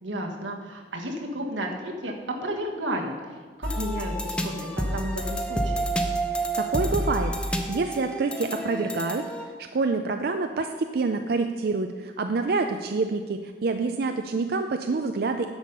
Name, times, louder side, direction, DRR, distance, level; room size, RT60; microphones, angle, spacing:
voice 1, 0.0-5.9, right 1 dB, 90° right, 1 dB, 1.5 m, -33 dB
sound 1, 3.6-9.4, right 1 dB, 5° left, 0.7 m, -29 dB
voice 2, 6.3-15.5, right 3 dB, 55° right, 6 dB, 0.4 m, -27 dB
10.5 x 7.2 x 5.3 m, 1.5 s
head